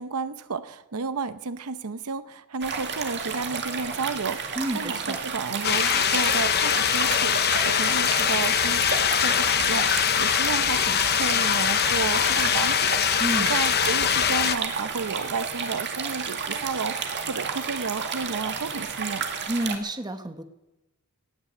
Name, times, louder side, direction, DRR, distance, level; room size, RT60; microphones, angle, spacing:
voice 1, 0.0-13.2 13.5-19.3, right 4 dB, 75° right, 13 dB, 0.8 m, -32 dB
sound 1, 2.6-19.8, right 6 dB, 55° right, 2.1 m, -32 dB
voice 2, 4.6-5.2 13.2-13.6 19.5-20.4, right 1 dB, 20° right, 9 dB, 1.1 m, -29 dB
sound 2, 5.6-14.6, left 9 dB, 50° left, 0.8 m, -23 dB
18.5 x 10.0 x 7.7 m, 1.0 s
head